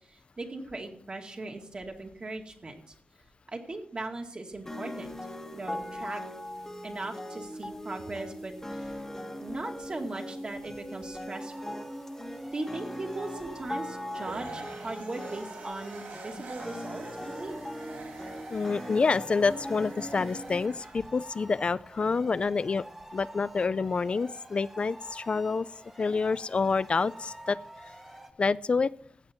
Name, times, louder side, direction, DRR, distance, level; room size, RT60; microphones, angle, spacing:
voice 1, 0.1-2.8 3.5-5.2 5.5-6.2 6.8-8.9 9.4-11.9 12.5-17.6, right 2 dB, 35° right, 3 dB, 2.1 m, -39 dB
sound 1, 4.7-20.7, equal, 15° left, 1.3 m, -40 dB
sound 2, 11.3-28.3, right 1 dB, 10° right, 0.9 m, -49 dB
sound 3, 14.2-21.4, right 4 dB, 85° right, 2.0 m, -46 dB
voice 2, 18.5-22.8 23.1-25.7 26.0-27.6 28.4-28.9, left 4 dB, 40° left, 18 dB, 0.4 m, -27 dB
15.0 x 8.9 x 4.4 m, 0.63 s
wide cardioid pair, 150°, 3 cm